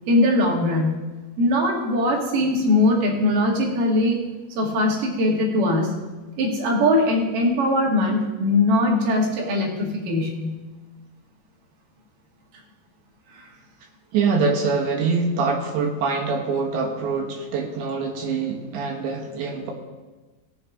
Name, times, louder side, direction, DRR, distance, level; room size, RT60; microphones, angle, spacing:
voice 1, 0.0-0.9 1.4-4.2 4.5-6.0 6.4-10.6 13.3-13.5, left 1 dB, 55° right, -2 dB, 3.2 m, -21 dB
voice 2, 14.1-19.7, right 4 dB, 85° right, 0 dB, 3.6 m, -24 dB
19.0 x 7.6 x 3.6 m, 1.2 s
omnidirectional pair, 5.0 m